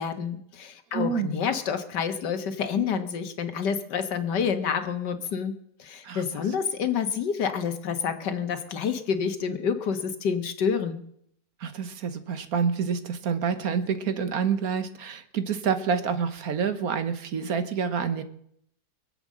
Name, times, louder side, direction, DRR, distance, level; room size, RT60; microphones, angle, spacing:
voice 1, 0.0-5.5 5.8-11.0, left 6 dB, 90° left, 8 dB, 2.0 m, -28 dB
voice 2, 0.9-1.3 6.0-6.2 11.6-18.2, right 6 dB, 60° right, 11 dB, 1.6 m, -28 dB
23.5 x 8.0 x 7.5 m, 0.69 s
omnidirectional pair, 1.8 m